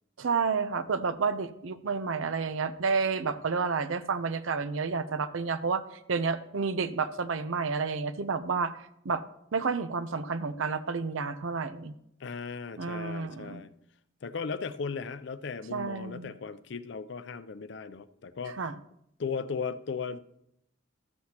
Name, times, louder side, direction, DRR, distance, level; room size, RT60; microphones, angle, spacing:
voice 1, 0.2-5.8 6.1-8.7 9.0-9.2 9.5-11.9 12.8-13.6 15.7-16.3 18.6-18.7, right 5 dB, 75° right, 0.6 m, -30 dB
voice 2, 12.2-13.7 14.2-18.7 19.2-20.2, left 5 dB, 55° left, 0.4 m, -36 dB
13.5 x 7.7 x 2.9 m
head